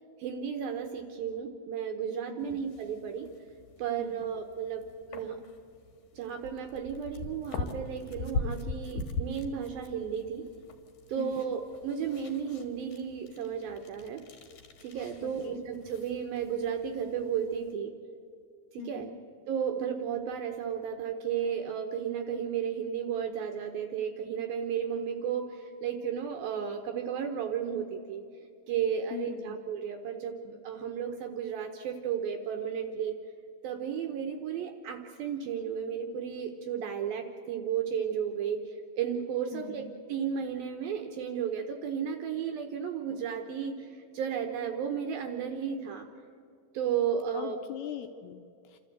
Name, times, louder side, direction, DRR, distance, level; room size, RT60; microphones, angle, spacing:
voice 1, 0.2-3.3 3.8-5.4 6.1-10.5 11.1-14.2 14.8-17.9 18.7-19.1 19.5-28.2 28.7-33.2 33.6-46.1 46.7-47.6, right 7 dB, 75° right, 5 dB, 2.3 m, -33 dB
voice 2, 2.3-2.6 4.0-4.3 11.2-11.6 15.2-15.6 18.8-19.2 29.1-29.6 39.5-39.8 47.3-48.8, left 10 dB, 80° left, 6 dB, 2.4 m, -42 dB
sound 1, 2.4-17.7, left 3 dB, 60° left, 2.3 m, -42 dB
29.0 x 13.0 x 7.8 m, 2.4 s
omnidirectional pair, 5.2 m